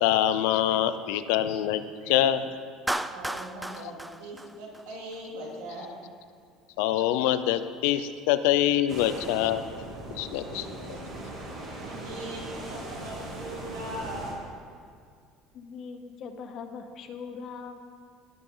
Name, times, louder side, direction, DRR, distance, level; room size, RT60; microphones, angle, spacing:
voice 1, 0.0-2.5 6.8-9.7 10.1-10.6, left 12 dB, 80° left, 12 dB, 0.5 m, -25 dB
Clapping, 2.9-5.2, right 1 dB, 5° right, 0.3 m, -34 dB
voice 2, 3.1-5.9 10.4-11.0 11.8-14.4, right 1 dB, 90° right, -3 dB, 2.7 m, -40 dB
sound 1, 8.9-14.3, right 1 dB, 45° right, 2.7 m, -39 dB
voice 3, 15.5-17.8, left 5 dB, 50° left, 8 dB, 0.9 m, -40 dB
17.0 x 7.0 x 3.9 m, 2.2 s
supercardioid pair, 115°, 0 cm